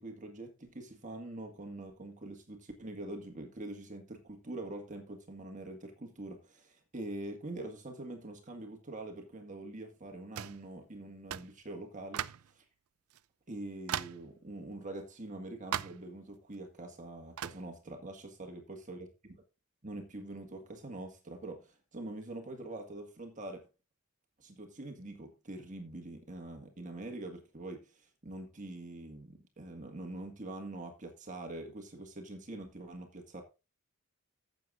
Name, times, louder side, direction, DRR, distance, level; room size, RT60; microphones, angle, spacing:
voice 1, 0.0-12.6 13.5-19.4 19.8-23.7 24.4-33.4, right 2 dB, 35° right, 1.7 m, -44 dB
sound 1, 10.4-10.6 11.3-11.5 12.1-12.5 13.1-13.2 13.9-14.3 15.7-16.1 17.4-17.7, right 10 dB, 75° right, 0.5 m, -37 dB
15.5 x 7.8 x 2.5 m
head